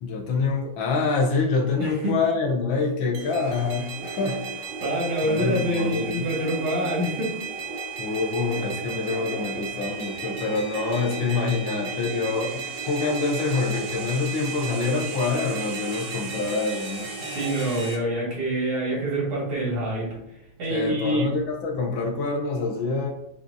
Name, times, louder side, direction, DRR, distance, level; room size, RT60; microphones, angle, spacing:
voice 1, 0.0-4.5 5.2-6.3 8.0-17.1 20.7-23.1, left 4 dB, 75° left, 0 dB, 1.5 m, -26 dB
voice 2, 1.8-2.2 4.8-7.3 17.2-20.1 20.6-21.3, right 1 dB, 85° right, -5 dB, 2.5 m, -26 dB
sound 1, 3.1-18.0, right 4 dB, 60° right, 0.8 m, -34 dB
6.7 x 2.4 x 2.5 m, 0.79 s
omnidirectional pair, 2.3 m